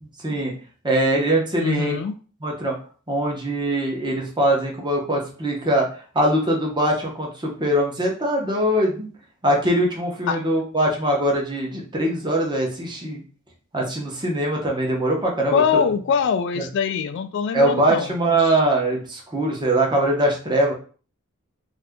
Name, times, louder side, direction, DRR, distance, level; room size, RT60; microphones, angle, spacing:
voice 1, 0.0-0.5 0.8-1.9 2.4-2.7 3.1-5.9 6.1-9.1 9.4-13.2 13.7-15.6 16.6-16.7 17.5-20.7, right 1 dB, 20° right, -1 dB, 0.8 m, -22 dB
voice 2, 1.6-2.1 10.3-10.4 15.5-18.1, left 6 dB, 60° left, 10 dB, 0.3 m, -23 dB
2.7 x 2.5 x 3.4 m, 0.40 s
head